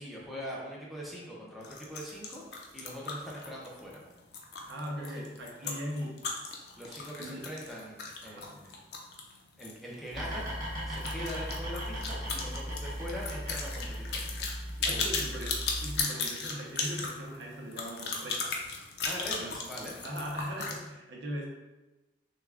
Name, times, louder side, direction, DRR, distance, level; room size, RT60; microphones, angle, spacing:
voice 1, 0.0-2.5 2.7-4.0 5.1-5.2 5.6-5.7 6.8-8.7 9.6-10.5 10.9-14.5 14.8-15.1 19.0-20.0, equal, ahead, -5 dB, 0.6 m, -42 dB
sound 1, 1.6-9.8 10.1-10.2 10.5-10.6 10.9-20.8, left 4 dB, 60° left, 0.6 m, -36 dB
voice 2, 4.7-6.2 7.2-7.4 8.2-8.7 14.8-18.6 19.4-19.6 20.0-21.5, equal, 75° right, -2 dB, 0.8 m, -39 dB
sound 2, 10.1-16.0, equal, 45° right, 1.2 m, -37 dB
6.5 x 2.3 x 2.4 m, 1.1 s
head